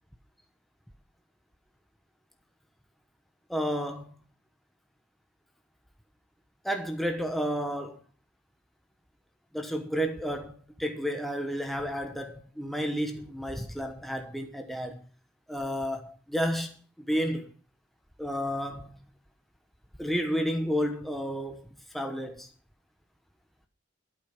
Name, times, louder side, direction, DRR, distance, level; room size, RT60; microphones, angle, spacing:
voice 1, 3.5-4.1 6.6-8.0 9.5-15.0 15.5-17.5 18.2-19.0 20.0-21.7 21.9-22.5, equal, ahead, 1.1 m, -31 dB
12.5 x 8.3 x 5.9 m
head